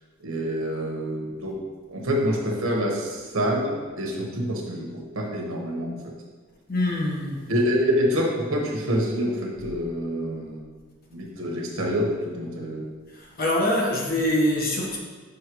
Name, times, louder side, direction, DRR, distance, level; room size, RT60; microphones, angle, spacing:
voice 1, 0.2-1.6 1.9-6.0 7.5-10.6 11.1-12.8, equal, 85° right, -1 dB, 1.2 m, -26 dB
voice 2, 6.7-7.4 13.1-15.0, left 1 dB, 45° left, -2 dB, 1.1 m, -24 dB
6.5 x 5.4 x 3.0 m, 1.4 s
head